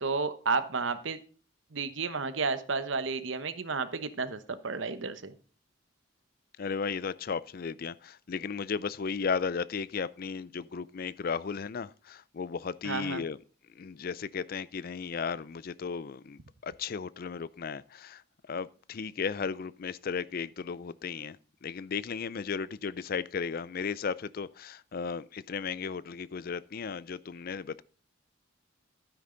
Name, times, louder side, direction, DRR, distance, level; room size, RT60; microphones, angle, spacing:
voice 1, 0.0-1.2 1.7-5.3 12.8-13.2, right 4 dB, 70° right, 1.0 m, -32 dB
voice 2, 6.6-13.4 13.7-18.2 18.5-21.4 21.6-27.8, left 5 dB, 50° left, 0.4 m, -35 dB
12.0 x 9.6 x 3.9 m
head